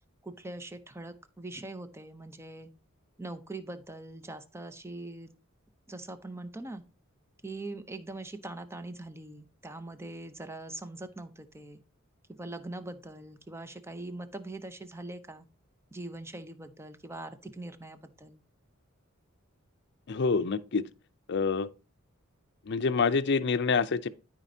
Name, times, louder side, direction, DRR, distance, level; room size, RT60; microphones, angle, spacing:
voice 1, 0.2-2.7 3.2-5.3 5.9-6.8 7.4-11.8 12.3-15.5 15.9-18.4, right 2 dB, 10° right, 0.7 m, -42 dB
voice 2, 20.1-20.8 21.3-21.7 22.7-24.1, left 4 dB, 55° left, 0.5 m, -26 dB
12.5 x 5.1 x 2.7 m
head